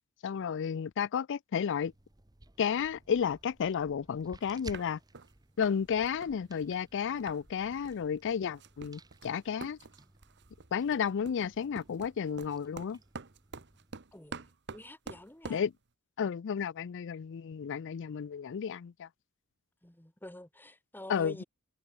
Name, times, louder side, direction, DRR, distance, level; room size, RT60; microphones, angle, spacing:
voice 1, 0.2-1.9 2.6-5.0 5.6-9.8 10.7-13.0 15.5-15.7 16.2-19.1 21.1-21.4, left 7 dB, 55° left, 0.4 m, -32 dB
sound 1, 1.8-14.0, right 2 dB, 15° right, 1.0 m, -56 dB
sound 2, 4.4-4.5 4.7-5.3 5.6-5.8 6.1-7.4 7.7-8.0 8.3-15.7, right 4 dB, 50° right, 1.3 m, -47 dB
voice 2, 14.1-15.6 19.8-21.4, left 1 dB, 10° left, 1.5 m, -48 dB
head